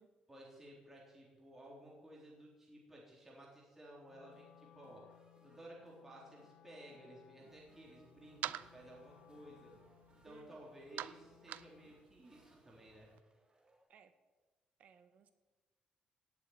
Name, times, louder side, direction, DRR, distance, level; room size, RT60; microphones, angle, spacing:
voice 1, 0.3-5.1 5.4-9.7 10.2-13.1, right 1 dB, 10° right, -4 dB, 3.9 m, -56 dB
sound 1, 4.0-13.8, right 1 dB, 30° right, 3.9 m, -72 dB
Wind instrument woodwind instrument, 4.1-12.1, left 13 dB, 65° left, 0.7 m, -65 dB
sound 2, 7.5-13.2, right 13 dB, 85° right, 0.5 m, -49 dB
voice 2, 10.2-10.7 13.9-14.1 14.8-15.3, right 7 dB, 55° right, 9 dB, 1.5 m, -62 dB
18.0 x 7.5 x 9.6 m, 1.3 s
cardioid pair, 150°, 3 cm